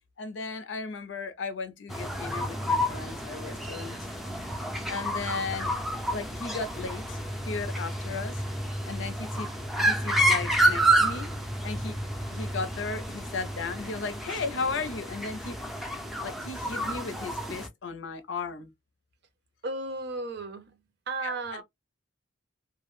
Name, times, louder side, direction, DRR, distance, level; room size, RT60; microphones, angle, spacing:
voice 1, 0.2-4.1 4.9-5.7 6.1-8.4 8.9-9.5 9.8-11.3 11.6-12.0 12.3-15.6 16.2-18.7 21.2-21.6, left 4 dB, 75° left, 0.5 m, -35 dB
sound 1, 1.9-17.7, right 1 dB, ahead, 0.5 m, -29 dB
voice 2, 19.6-20.7 21.1-21.6, right 3 dB, 60° right, 0.6 m, -34 dB
2.2 x 2.1 x 3.0 m
head